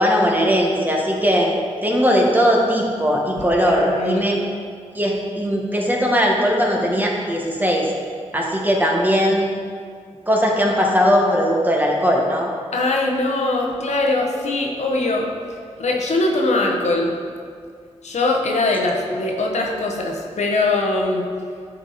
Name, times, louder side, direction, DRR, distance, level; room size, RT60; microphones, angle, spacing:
voice 1, 0.0-1.6 1.8-4.4 4.9-7.9 8.3-9.5 10.3-12.5, equal, 15° right, -1 dB, 1.4 m, -19 dB
voice 2, 3.6-4.2 12.7-15.3 15.8-17.2 18.0-21.3, left 2 dB, 70° left, 0 dB, 1.0 m, -21 dB
10.0 x 4.4 x 4.1 m, 2.1 s
cardioid pair, 60°, 12 cm